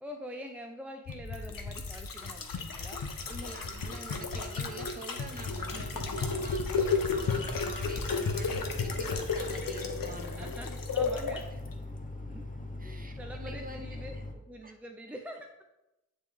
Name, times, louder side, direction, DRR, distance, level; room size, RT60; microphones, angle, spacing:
voice 1, 0.0-3.1 5.7-6.0 10.4-11.5 12.3-12.5 12.8-15.6, equal, 5° right, 3 dB, 0.4 m, -45 dB
sound 1, 1.1-11.4 11.7-11.8, left 4 dB, 70° left, 0.8 m, -33 dB
voice 2, 2.6-2.9 3.2-10.6 12.8-14.2 14.6-14.7, right 2 dB, 25° right, 4 dB, 0.8 m, -46 dB
sound 2, 5.3-14.3, left 2 dB, 25° left, 0.8 m, -41 dB
9.4 x 3.6 x 3.4 m, 0.96 s
wide cardioid pair, 95°, 35 cm